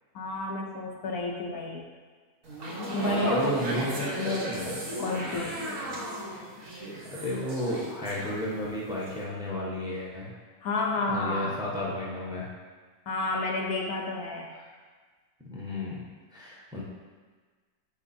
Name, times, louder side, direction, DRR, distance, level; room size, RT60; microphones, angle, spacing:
voice 1, 0.1-1.9 2.9-4.0 5.0-5.6 10.6-11.6 13.1-14.5, left 2 dB, 65° left, -1 dB, 1.1 m, -31 dB
sound 1, 2.4-8.7 9.0-9.2, right 1 dB, 50° right, 1.6 m, -34 dB
voice 2, 3.2-4.8 7.1-10.3 11.1-12.5 15.5-16.0 16.3-16.8, left 1 dB, 5° right, -4 dB, 1.0 m, -32 dB
6.4 x 4.9 x 4.3 m, 1.5 s
omnidirectional pair, 1.8 m